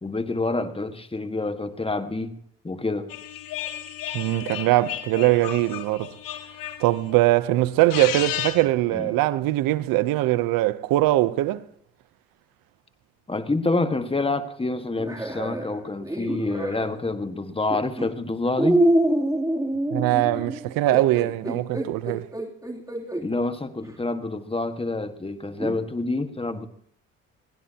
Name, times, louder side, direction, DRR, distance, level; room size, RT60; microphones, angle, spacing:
voice 1, 0.0-2.4 2.6-3.1 8.9-9.2 13.3-18.8 23.2-26.7, left 2 dB, 15° left, 1.6 m, -27 dB
sound 1, 3.1-7.2 7.7-8.7, left 12 dB, 75° left, 1.4 m, -33 dB
voice 2, 4.1-6.1 6.8-11.6 19.9-22.3, right 16 dB, 80° right, 0.8 m, -22 dB
sound 2, 15.0-16.9 17.7-18.1 18.6-23.3 23.9-24.0 25.6-25.8, right 1 dB, 10° right, 3.0 m, -25 dB
22.0 x 16.5 x 2.9 m
supercardioid pair, 70°, 33 cm